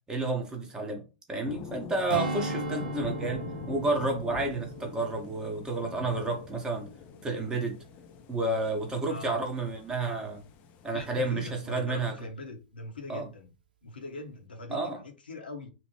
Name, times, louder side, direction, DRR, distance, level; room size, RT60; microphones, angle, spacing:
voice 1, 0.1-1.0 1.3-6.9 7.2-7.8 8.3-10.4 10.8-12.1 13.1-13.3 14.7-15.0, right 2 dB, 15° right, 0.8 m, -30 dB
sound 1, 1.4-11.3, left 6 dB, 30° left, 0.4 m, -45 dB
Strum, 2.1-6.8 7.2-7.4, right 2 dB, 65° right, 0.7 m, -38 dB
voice 2, 9.1-9.4 10.9-13.5 13.8-15.7, left 2 dB, 80° left, 0.7 m, -42 dB
2.9 x 2.0 x 3.0 m
figure-of-eight pair, 105°, 5 cm